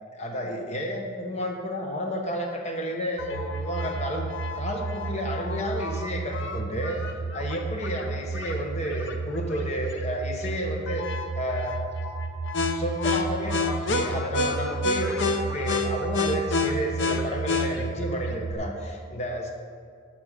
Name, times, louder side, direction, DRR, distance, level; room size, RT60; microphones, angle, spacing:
voice 1, 0.1-7.0 7.3-11.0 11.3-11.8 12.6-19.5, equal, 35° left, 2 dB, 1.0 m, -31 dB
sound 1, 3.2-18.5, equal, 60° left, 0.7 m, -29 dB
11.0 x 6.0 x 5.0 m, 2.2 s
head